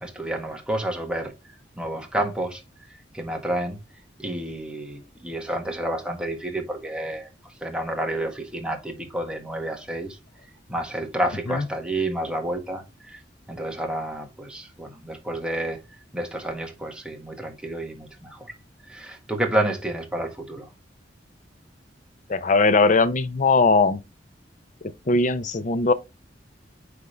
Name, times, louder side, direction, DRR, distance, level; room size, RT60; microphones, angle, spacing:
voice 1, 0.0-1.3 1.8-2.6 2.9-3.8 4.2-10.2 10.7-13.2 13.5-15.8 16.1-18.5 18.9-20.7, right 1 dB, 5° right, 1.7 m, -30 dB
voice 2, 22.3-24.0 24.8-25.9, left 3 dB, 45° left, 0.7 m, -20 dB
9.4 x 3.7 x 3.4 m
head